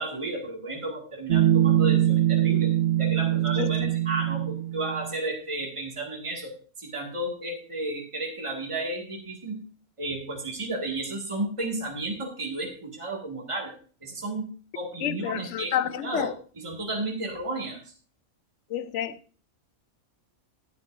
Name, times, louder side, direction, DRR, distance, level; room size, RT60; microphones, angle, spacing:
voice 1, 0.0-2.7 3.0-6.5 6.8-9.6 10.0-13.7 14.0-14.5 14.7-15.7 16.0-16.3 16.6-17.8, right 2 dB, 20° right, 2.1 m, -33 dB
sound 1, 1.3-5.1, right 12 dB, 65° right, 1.2 m, -23 dB
voice 2, 3.6-3.9 15.0-16.3 18.7-19.1, left 10 dB, 65° left, 0.9 m, -29 dB
14.0 x 9.0 x 2.6 m
omnidirectional pair, 1.5 m